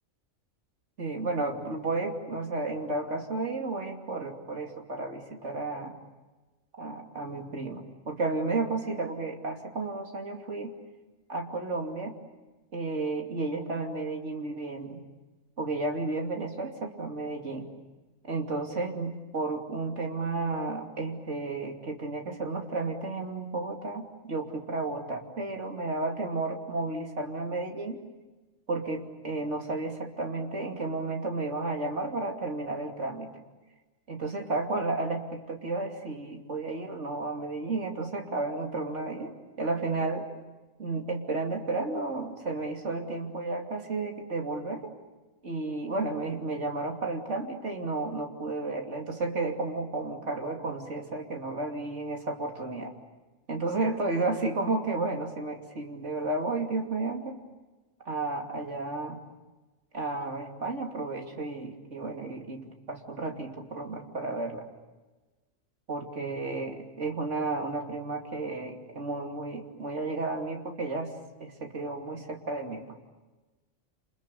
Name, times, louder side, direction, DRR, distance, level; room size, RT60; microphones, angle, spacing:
voice 1, 1.0-6.0 6.8-10.7 11.3-12.1 12.7-15.0 15.6-17.7 18.2-28.0 28.7-33.3 34.1-40.3 40.8-44.9 45.4-52.9 53.5-57.4 58.0-59.2 59.9-64.7 65.9-71.1 71.4-73.0, right 3 dB, 60° right, 2 dB, 3.2 m, -32 dB
29.0 x 28.5 x 7.0 m, 1.2 s
omnidirectional pair, 1.4 m